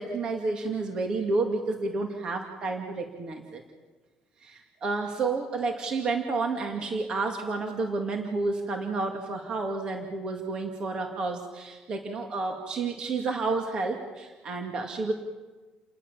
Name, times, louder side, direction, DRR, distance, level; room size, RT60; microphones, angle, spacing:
voice 1, 0.0-3.6 4.4-15.1, right 3 dB, 35° right, 4 dB, 2.3 m, -30 dB
29.5 x 19.5 x 7.2 m, 1.3 s
cardioid pair, 175°, 2 cm